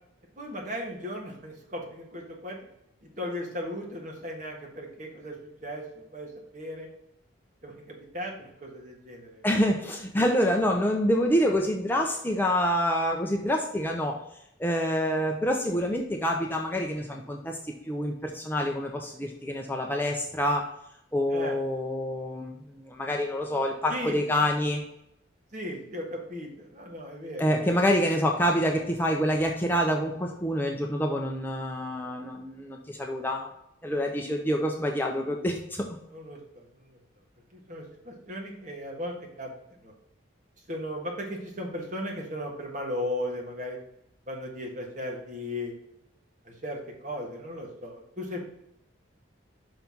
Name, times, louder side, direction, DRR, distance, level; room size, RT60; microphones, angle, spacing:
voice 1, 0.4-2.6 3.0-6.9 7.6-9.4 21.3-21.6 23.9-24.1 24.4-24.5 25.5-28.1 36.1-37.0 37.5-39.5 39.8-39.9 40.7-43.8 44.3-45.7 46.4-48.4, equal, 40° right, 0 dB, 1.5 m, -37 dB
voice 2, 9.4-14.2 14.6-20.7 21.1-24.8 27.4-33.5 33.8-35.9, equal, 10° left, 1 dB, 0.5 m, -27 dB
5.7 x 4.0 x 5.8 m, 0.79 s
head